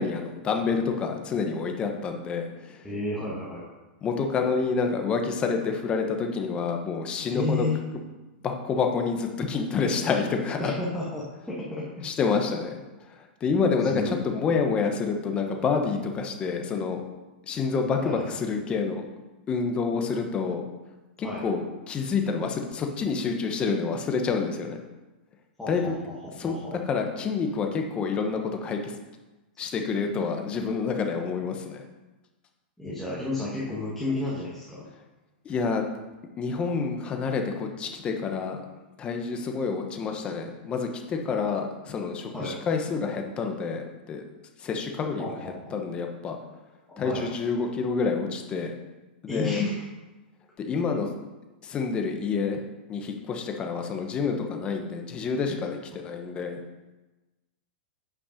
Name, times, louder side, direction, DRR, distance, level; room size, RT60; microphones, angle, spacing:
voice 1, 0.0-2.8 4.0-7.7 8.4-10.7 12.0-12.7 13.1-17.0 17.5-19.1 19.5-20.6 21.2-24.8 25.7-25.8 26.4-26.6 26.9-28.9 29.6-31.8 35.4-35.9 36.4-38.6 39.0-44.2 44.6-46.4 47.0-48.7 49.2-49.6 50.6-51.1 51.6-52.6 52.9-56.6, left 5 dB, 20° left, 4 dB, 0.9 m, -28 dB
voice 2, 2.8-3.6 7.2-7.8 10.6-12.1 13.8-14.2 18.0-18.3 21.2-21.4 25.6-26.7 32.8-34.9 42.3-42.6 45.2-45.8 46.9-47.3 49.3-49.7, left 2 dB, 5° left, -7 dB, 1.3 m, -32 dB
8.7 x 5.1 x 5.0 m, 1.1 s
supercardioid pair, 155°, 6 cm